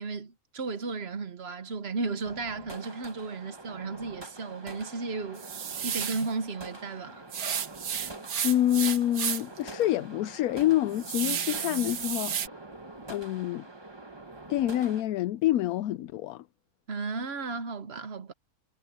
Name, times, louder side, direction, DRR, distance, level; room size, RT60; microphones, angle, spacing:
voice 1, 0.0-5.4 5.8-7.2 16.9-18.3, right 4 dB, 50° right, 1.2 m, -34 dB
sound 1, 2.2-15.0, right 2 dB, 20° right, 1.4 m, -45 dB
sound 2, 5.4-6.3 7.3-9.6 10.0-10.1 10.6-12.5, right 8 dB, 80° right, 1.6 m, -32 dB
voice 2, 8.4-12.4 13.1-13.7 14.5-16.5, left 13 dB, 80° left, 1.0 m, -27 dB
omnidirectional pair, 1.5 m